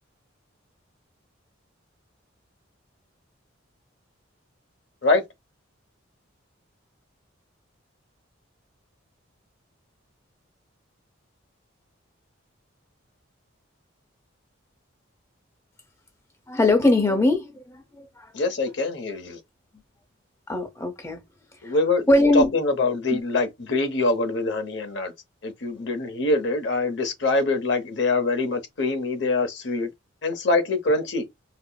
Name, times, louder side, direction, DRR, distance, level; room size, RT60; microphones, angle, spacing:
voice 1, 16.5-18.3 20.5-21.2 21.6-21.8 22.1-22.5 23.1-23.2 25.8-25.9, left 2 dB, 15° left, 0.7 m, -21 dB
voice 2, 18.3-19.4 21.6-22.1 22.3-25.1 25.4-29.9 30.2-31.2, left 2 dB, 60° left, 0.7 m, -24 dB
4.1 x 2.0 x 2.2 m
head